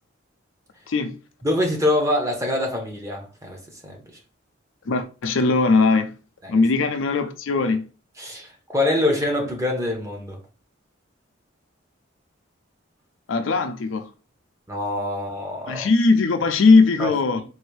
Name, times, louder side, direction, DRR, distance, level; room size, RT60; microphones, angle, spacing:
voice 1, 1.4-4.0 6.4-6.6 8.2-10.4 14.7-15.9 17.0-17.4, left 1 dB, 15° right, 0.9 m, -25 dB
voice 2, 4.9-6.1 6.5-7.8 13.3-14.1 15.7-17.4, left 3 dB, 85° left, 0.5 m, -19 dB
3.9 x 2.7 x 3.2 m
head